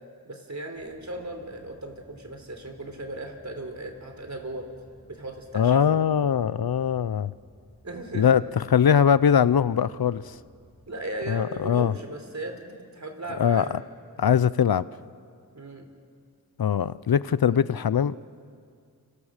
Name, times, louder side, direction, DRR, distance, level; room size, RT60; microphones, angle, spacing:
voice 1, 0.2-4.7 5.1-6.0 7.8-8.3 10.9-13.8 15.5-15.8, right 2 dB, 45° right, 5 dB, 4.0 m, -37 dB
sound 1, 0.7-14.0, right 1 dB, 5° right, 5.4 m, -57 dB
voice 2, 5.5-7.3 8.1-8.4 8.7-10.3 11.3-11.9 13.4-13.7 14.2-14.9 16.6-18.1, left 8 dB, 70° left, 17 dB, 0.6 m, -21 dB
29.5 x 27.0 x 6.6 m, 2.2 s
wide cardioid pair, 60°, 38 cm